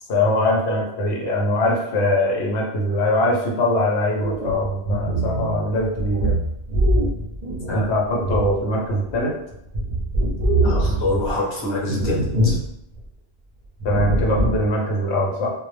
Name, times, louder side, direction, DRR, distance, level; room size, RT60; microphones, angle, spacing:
voice 1, 0.1-6.4 7.7-9.3 13.8-15.5, left 1 dB, 80° left, -2 dB, 0.9 m, -22 dB
sound 1, 4.2-9.2 9.5-11.4 11.8-12.7 13.0-13.1 13.8-14.7, right 1 dB, 50° right, 0.6 m, -23 dB
voice 2, 10.6-12.6, left 2 dB, 30° left, -5 dB, 0.6 m, -26 dB
2.0 x 2.0 x 3.2 m, 0.81 s
omnidirectional pair, 1.1 m